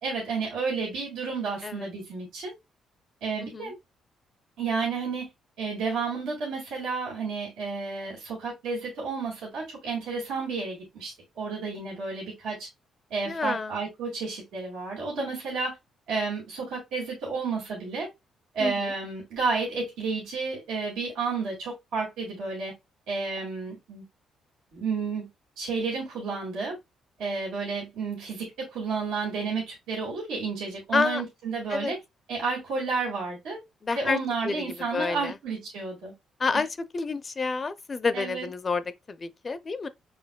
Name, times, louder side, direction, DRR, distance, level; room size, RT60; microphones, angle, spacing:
voice 1, 0.0-2.5 3.2-3.7 4.6-5.3 5.6-12.7 13.1-15.8 16.1-18.1 18.5-22.7 23.1-24.0 24.7-25.3 25.6-26.8 27.2-32.0 32.3-33.6 33.9-36.1 38.1-38.5, right 4 dB, 90° right, 2.0 m, -31 dB
voice 2, 3.4-3.7 13.3-13.7 18.6-18.9 30.9-31.2 31.7-31.9 33.8-34.2 34.4-35.4 36.4-36.7 36.9-39.9, left 4 dB, 35° left, 0.4 m, -29 dB
5.6 x 3.4 x 2.2 m
cardioid pair, 90°, 0 cm